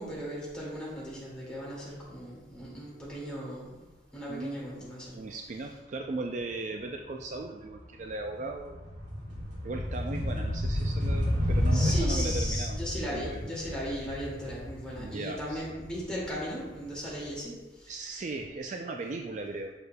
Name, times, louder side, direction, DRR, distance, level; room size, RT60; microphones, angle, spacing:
voice 1, 0.0-3.7 4.1-5.2 11.7-18.2, equal, 5° left, -7 dB, 2.1 m, -37 dB
voice 2, 4.3-8.8 9.6-12.8 13.1-13.5 15.0-15.6 17.9-19.7, right 2 dB, 40° right, 3 dB, 0.3 m, -38 dB
sound 1, 7.2-7.4 7.7-16.6, equal, 90° right, 2.1 m, -31 dB
6.8 x 6.5 x 2.2 m, 1.1 s
head